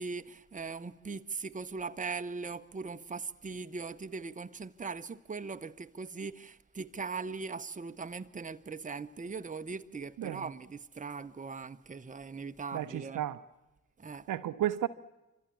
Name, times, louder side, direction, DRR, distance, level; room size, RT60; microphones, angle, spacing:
voice 1, 0.0-13.2 14.0-14.4, right 4 dB, 20° right, 1.1 m, -40 dB
voice 2, 10.2-10.5 12.7-13.4 14.3-14.9, right 12 dB, 55° right, 0.9 m, -33 dB
28.0 x 25.5 x 7.2 m
figure-of-eight pair, 40°, 38 cm